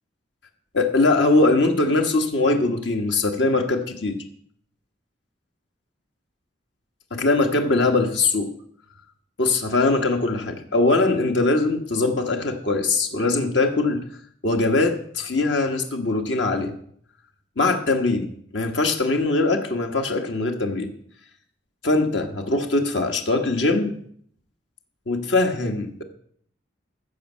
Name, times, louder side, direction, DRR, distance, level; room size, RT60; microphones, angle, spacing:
voice 1, 0.7-4.2 7.1-8.5 9.4-14.0 14.4-16.7 17.6-18.3 18.5-20.9 21.8-24.0 25.1-26.0, left 2 dB, 75° left, 4 dB, 1.3 m, -21 dB
15.0 x 5.3 x 7.3 m, 0.63 s
head